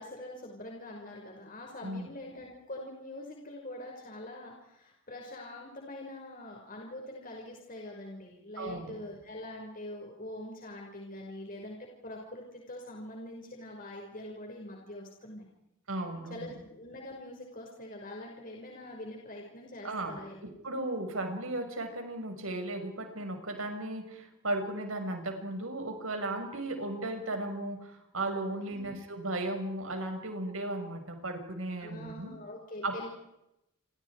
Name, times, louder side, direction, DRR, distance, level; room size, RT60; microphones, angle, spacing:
voice 1, 0.0-15.4 16.3-20.4 28.6-28.9 31.8-33.1, left 1 dB, 40° left, 0 dB, 5.8 m, -44 dB
voice 2, 8.6-8.9 15.9-16.5 19.8-32.3 32.8-33.1, right 2 dB, 85° right, 5 dB, 6.1 m, -36 dB
30.0 x 28.0 x 5.0 m, 0.85 s
head